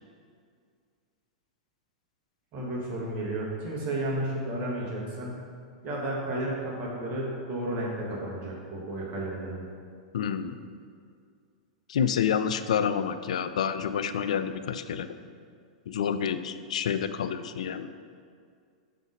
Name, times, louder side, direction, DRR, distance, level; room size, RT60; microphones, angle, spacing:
voice 1, 2.5-5.4 5.8-9.6, right 1 dB, 40° right, -4 dB, 1.5 m, -32 dB
voice 2, 10.1-10.6 11.9-15.1 15.9-17.9, left 8 dB, 70° left, 10 dB, 0.3 m, -28 dB
5.8 x 4.0 x 5.1 m, 2.2 s
hypercardioid pair, 105°, 4 cm